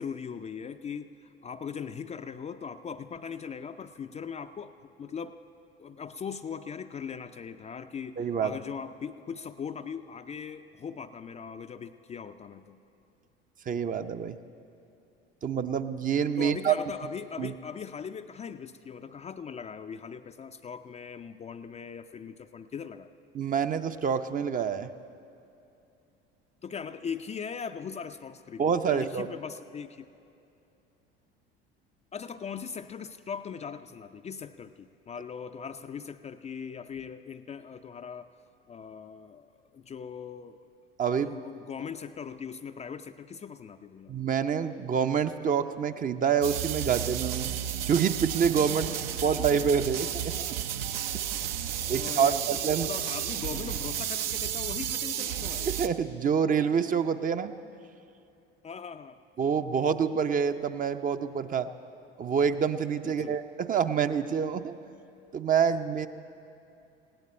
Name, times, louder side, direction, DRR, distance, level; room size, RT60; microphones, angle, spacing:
voice 1, 0.0-5.4 5.8-12.8 16.4-23.1 26.6-30.1 32.1-38.3 38.7-40.6 41.1-44.1 48.8-49.7 51.3-51.6 52.0-55.7 58.6-59.2 63.0-63.4, left 6 dB, 20° left, 8 dB, 0.5 m, -40 dB
voice 2, 8.2-8.5 13.7-14.4 15.4-16.7 17.4-17.5 23.3-24.9 28.6-29.3 41.0-41.3 44.1-47.5 47.9-48.9 49.2-50.6 51.1-51.2 51.9-52.9 55.7-57.5 59.4-61.7 62.2-64.7 65.3-66.1, right 7 dB, 25° right, 9 dB, 0.6 m, -27 dB
sound 1, 46.4-55.9, right 10 dB, 65° right, 0.8 m, -32 dB
19.5 x 17.0 x 4.4 m, 2.7 s
figure-of-eight pair, 65°, 30 cm